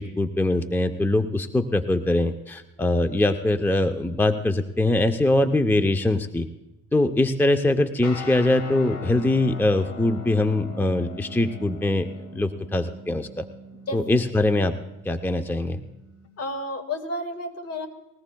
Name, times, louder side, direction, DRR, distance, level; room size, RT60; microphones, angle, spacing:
voice 1, 0.0-6.5 6.9-12.1 12.3-13.5 13.9-14.7 15.0-15.8, left 2 dB, 5° left, 8 dB, 0.6 m, -22 dB
sound 1, 8.0-16.3, left 1 dB, 70° left, 2.4 m, -40 dB
voice 2, 13.9-14.2 16.4-17.9, left 1 dB, 55° left, 7 dB, 1.9 m, -31 dB
20.5 x 18.0 x 2.3 m, 0.98 s
cardioid pair, 90°, 30 cm